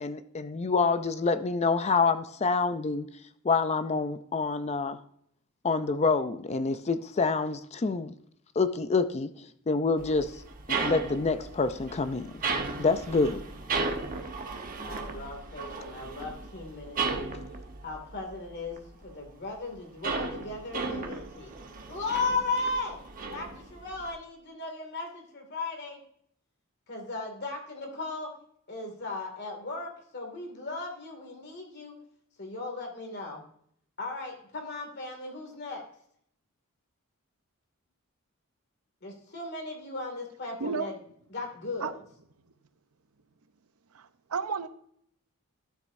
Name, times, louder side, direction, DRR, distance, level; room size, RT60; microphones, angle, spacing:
voice 1, 0.0-3.1 3.4-5.0 5.6-8.1 8.6-9.3 9.7-10.3 10.7-12.3 12.8-13.4, left 4 dB, 30° left, 12 dB, 0.4 m, -27 dB
sound 1, 10.0-19.1 19.4-24.1, right 4 dB, 40° right, 1.0 m, -35 dB
voice 2, 14.8-17.4 17.8-18.8 19.0-21.5 21.9-23.0 23.3-26.0 26.9-28.3 28.7-31.9 32.4-33.4 34.0-35.8 39.0-40.9 41.3-42.0, left 3 dB, 50° left, 3 dB, 2.2 m, -36 dB
voice 3, 43.9-44.7, right 5 dB, 80° right, 12 dB, 0.7 m, -32 dB
12.5 x 7.6 x 2.6 m, 0.66 s
head